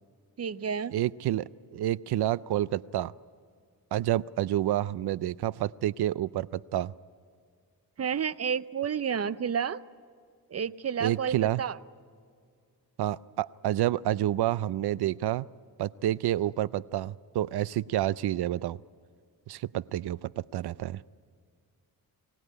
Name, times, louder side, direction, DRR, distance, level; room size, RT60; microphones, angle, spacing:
voice 1, 0.4-0.9 8.0-9.8 10.5-11.8, right 7 dB, 40° right, 16 dB, 0.6 m, -30 dB
voice 2, 0.9-3.1 3.9-6.9 11.0-11.6 13.0-15.5 15.8-18.8 19.5-21.0, right 13 dB, 85° right, 20 dB, 0.5 m, -29 dB
24.5 x 18.0 x 9.7 m, 2.2 s
wide cardioid pair, 120°, 38 cm